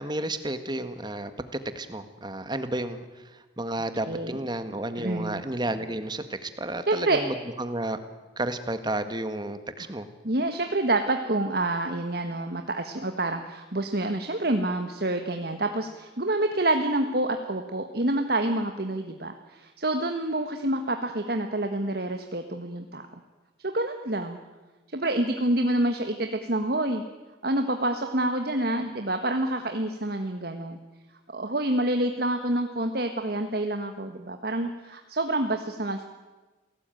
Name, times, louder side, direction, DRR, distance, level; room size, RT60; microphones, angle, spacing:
voice 1, 0.0-8.0 8.4-10.1, right 1 dB, 20° right, 10 dB, 1.7 m, -32 dB
voice 2, 4.1-4.4 5.0-5.4 6.9-7.2 10.2-23.2 23.6-24.4 24.9-27.0 27.4-30.8 31.3-36.1, right 1 dB, 55° right, 6 dB, 1.5 m, -27 dB
28.5 x 18.0 x 9.2 m, 1.2 s
head